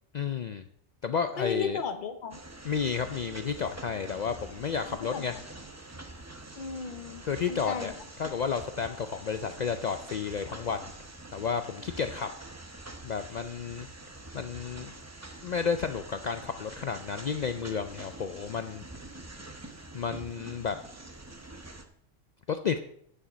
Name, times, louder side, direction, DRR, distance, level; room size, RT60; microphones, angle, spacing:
voice 1, 0.1-0.6 1.0-1.8 2.6-5.3 7.3-7.9 8.2-10.9 11.3-12.3 13.0-13.9 14.3-14.9 15.4-18.8 19.9-20.8 22.5-22.8, left 6 dB, 65° left, 9 dB, 0.4 m, -31 dB
voice 2, 1.4-2.4 4.9-5.4 6.5-7.9, left 5 dB, 45° left, 9 dB, 0.9 m, -35 dB
sound 1, 2.3-21.9, right 2 dB, 15° right, 0.6 m, -46 dB
8.9 x 7.1 x 5.1 m, 0.68 s
omnidirectional pair, 1.2 m